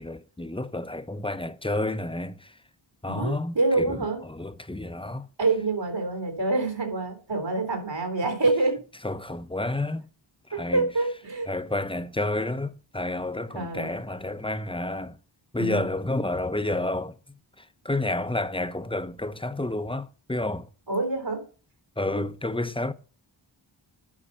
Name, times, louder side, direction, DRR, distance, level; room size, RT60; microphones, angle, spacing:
voice 1, 0.0-2.5 3.0-5.3 9.0-10.1 10.5-10.9 11.5-15.2 15.5-17.1 17.6-20.7 22.0-22.9, left 2 dB, 10° left, 0.7 m, -30 dB
voice 2, 3.1-4.2 5.4-8.8 10.5-11.5 13.5-13.9 15.6-15.8 20.9-21.4, right 3 dB, 65° right, 3.7 m, -26 dB
11.0 x 5.7 x 5.6 m
wide cardioid pair, 50°, 47 cm